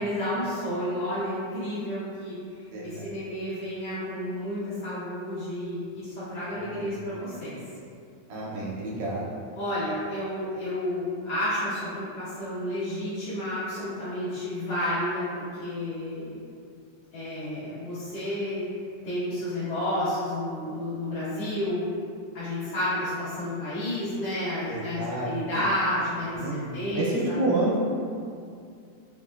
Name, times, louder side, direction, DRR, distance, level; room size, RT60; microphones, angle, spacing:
voice 1, 0.0-7.6 9.6-16.4 17.1-18.6 19.0-21.9 22.3-27.4, left 1 dB, 65° left, -13 dB, 1.8 m, -31 dB
voice 2, 2.7-3.2 6.5-7.0 8.3-9.3 24.7-25.8 26.4-27.8, right 2 dB, 85° right, -6 dB, 2.2 m, -30 dB
5.1 x 2.0 x 2.3 m, 2.3 s
omnidirectional pair, 3.5 m